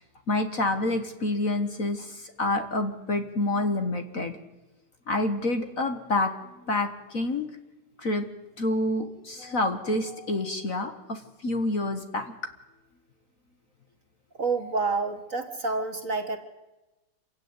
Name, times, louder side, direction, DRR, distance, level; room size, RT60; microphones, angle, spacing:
voice 1, 0.3-4.4 5.1-6.3 6.7-7.5 8.0-8.3 8.6-12.3, left 2 dB, 40° left, 7 dB, 1.7 m, -28 dB
voice 2, 14.4-16.4, right 3 dB, 40° right, 7 dB, 1.8 m, -28 dB
27.0 x 16.5 x 9.6 m, 1.1 s
omnidirectional pair, 2.4 m